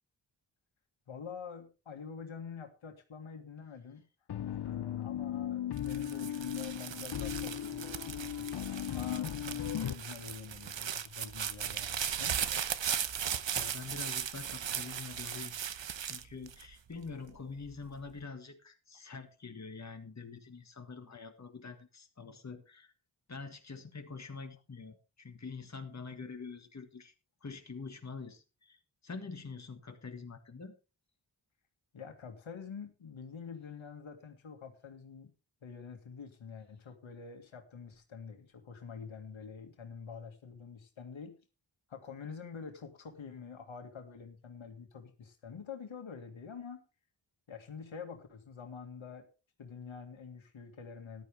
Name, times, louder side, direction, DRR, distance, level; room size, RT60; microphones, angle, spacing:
voice 1, 1.1-4.1 4.5-8.5 8.9-12.4 31.9-35.3 35.6-41.4 41.9-46.8 47.5-49.3 49.6-51.2, left 6 dB, 90° left, 5 dB, 2.1 m, -47 dB
sound 1, 4.3-9.9, left 11 dB, 60° left, 0.6 m, -37 dB
sound 2, 5.8-17.1 17.7-18.2, right 8 dB, 70° right, 1.0 m, -37 dB
voice 2, 13.6-22.9 23.3-27.1 27.4-30.8, left 4 dB, 35° left, 5 dB, 1.8 m, -46 dB
14.0 x 11.5 x 3.4 m, 0.31 s
wide cardioid pair, 90°, 46 cm